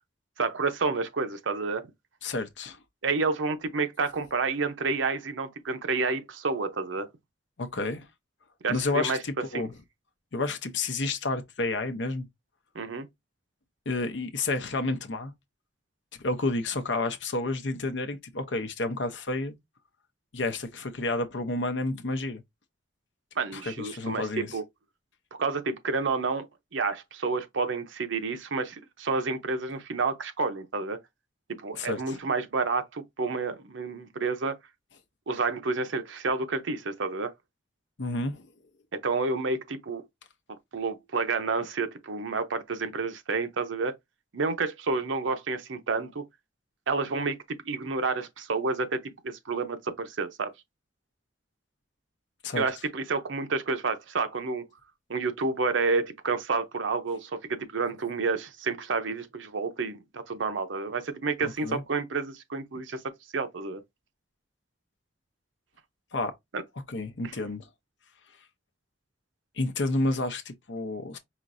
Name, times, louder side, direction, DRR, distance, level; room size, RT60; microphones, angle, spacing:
voice 1, 0.4-1.8 3.0-7.1 8.6-9.2 9.5-9.7 12.7-13.1 23.4-24.6 25.4-26.5 26.7-31.0 31.6-34.6 35.3-37.3 38.9-40.0 40.7-43.9 44.3-46.2 46.9-50.5 52.6-54.7 55.1-63.0 63.3-63.8 66.5-66.6 67.2-67.3, right 4 dB, 90° right, 0.7 m, -29 dB
voice 2, 2.2-2.8 7.6-8.1 8.7-9.7 10.3-12.3 13.9-15.3 16.2-19.6 20.3-22.4 23.5-24.6 31.7-32.2 38.0-38.5 52.4-52.6 61.4-61.8 66.1-66.3 66.9-67.6 69.6-71.2, left 2 dB, 70° left, 0.8 m, -30 dB
5.1 x 2.9 x 2.6 m
head